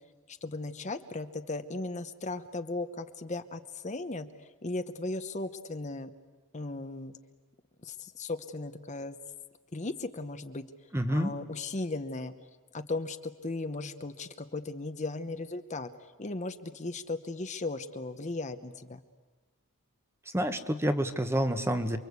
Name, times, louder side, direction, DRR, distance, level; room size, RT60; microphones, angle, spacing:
voice 1, 0.3-6.1 6.5-7.1 7.8-9.2 9.7-10.6 11.1-12.3 12.7-15.9 16.2-19.0, left 2 dB, 30° left, 9 dB, 0.9 m, -36 dB
voice 2, 10.9-11.3 20.3-22.0, equal, 10° right, 8 dB, 1.2 m, -28 dB
29.0 x 23.5 x 8.3 m, 1.2 s
head